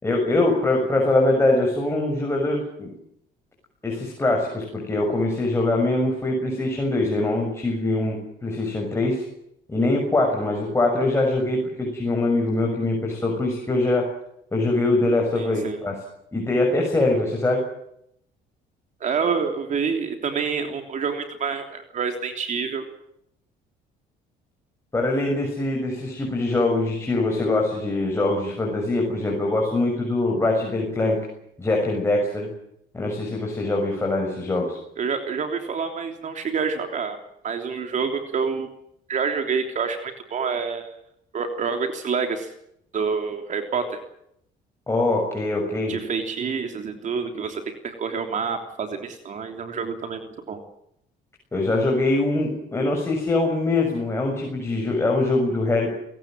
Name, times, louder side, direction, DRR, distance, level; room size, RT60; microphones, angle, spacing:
voice 1, 0.0-2.9 3.8-9.2 9.7-14.0 14.5-16.0 16.3-17.6 24.9-31.2 31.6-32.5 32.9-34.8 44.9-46.0 51.5-55.9, left 2 dB, 15° left, 0 dB, 6.8 m, -23 dB
voice 2, 15.3-15.8 19.0-22.8 35.0-37.2 37.4-38.7 39.1-41.0 41.3-42.5 42.9-44.0 45.9-50.6, right 5 dB, 45° right, 5 dB, 3.4 m, -27 dB
29.0 x 18.0 x 7.7 m, 0.75 s
cardioid pair, 110°, 17 cm